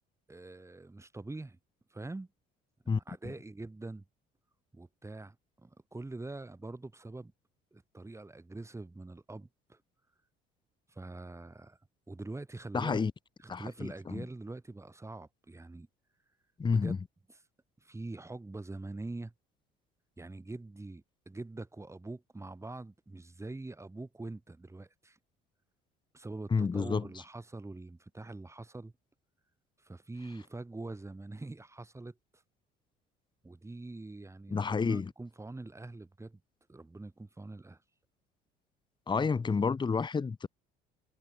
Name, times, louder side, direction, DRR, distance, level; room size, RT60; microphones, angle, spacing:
voice 1, 0.3-1.6 1.9-2.3 3.1-4.0 4.7-7.3 7.7-9.8 10.9-11.8 12.1-13.0 13.4-15.9 16.7-16.9 17.8-19.3 20.2-25.2 26.1-28.9 29.8-32.4 33.4-36.4 36.7-37.8, right 2 dB, 15° right, 4.3 m, -44 dB
voice 2, 12.7-13.1 13.5-14.2 16.6-17.0 26.5-27.1 34.5-35.1 39.1-40.5, left 5 dB, 25° left, 1.1 m, -30 dB
supercardioid pair, 80°, 19 cm